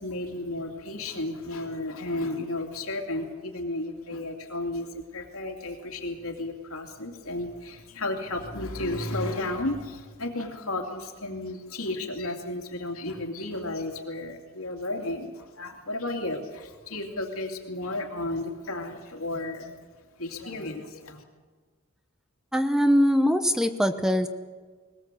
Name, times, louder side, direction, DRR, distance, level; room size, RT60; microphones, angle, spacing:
voice 1, 0.0-19.8 20.2-21.2, left 2 dB, 80° left, 2 dB, 2.7 m, -33 dB
voice 2, 22.5-24.3, equal, 5° right, 9 dB, 0.8 m, -22 dB
20.5 x 19.5 x 7.6 m, 1.5 s
head